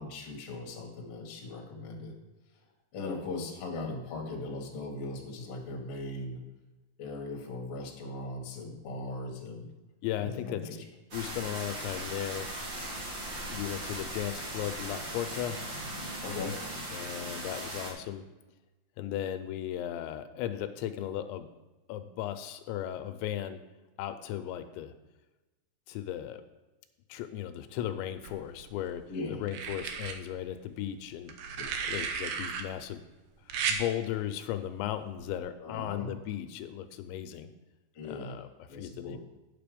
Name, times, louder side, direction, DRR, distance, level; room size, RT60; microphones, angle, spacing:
voice 1, 0.0-2.1 2.9-6.4 7.0-9.7 10.2-10.8 16.2-16.6 29.1-29.4 35.6-36.1 37.9-38.4 38.7-39.2, left 2 dB, 50° left, 0 dB, 1.9 m, -39 dB
voice 2, 10.0-10.6 11.1-12.5 13.5-15.6 16.9-18.2 19.0-21.5 21.9-23.6 24.0-24.9 25.9-26.4 27.1-29.0 29.3-31.3 31.9-33.0 33.5-37.5 38.0-39.2, left 11 dB, 85° left, 9 dB, 2.9 m, -36 dB
sound 1, 11.1-17.9, right 1 dB, 45° right, 1.5 m, -38 dB
sound 2, 28.2-28.9 29.5-30.1 31.3-32.6 33.5-33.8 35.2-35.4, right 6 dB, 85° right, 2.1 m, -34 dB
9.5 x 6.9 x 5.1 m, 1.1 s
omnidirectional pair, 5.2 m